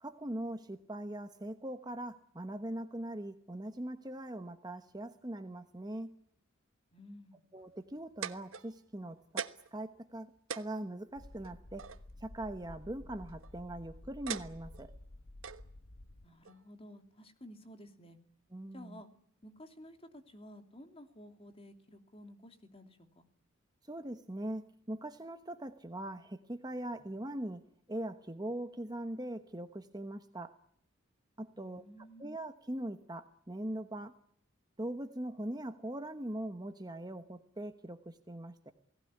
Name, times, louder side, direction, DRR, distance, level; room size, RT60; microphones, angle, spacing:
voice 1, 0.0-6.2 7.5-11.9 12.2-14.9 18.5-19.0 23.9-27.6 27.9-30.6 31.4-31.8 32.2-34.2 34.8-38.7, right 1 dB, 20° right, 8 dB, 1.1 m, -41 dB
voice 2, 6.9-7.4 16.2-18.2 18.7-19.1 19.4-23.3 31.5-32.3, equal, 25° left, 6 dB, 2.9 m, -53 dB
sound 1, 7.9-9.0 9.4-9.8 10.1-10.2 10.5-12.0 13.1-13.5 14.3-14.9 15.4-15.6 16.5-16.6, right 7 dB, 70° right, 1.3 m, -41 dB
sound 2, 11.2-16.3, left 1 dB, 75° left, 1.4 m, -52 dB
29.0 x 18.5 x 9.9 m, 0.66 s
head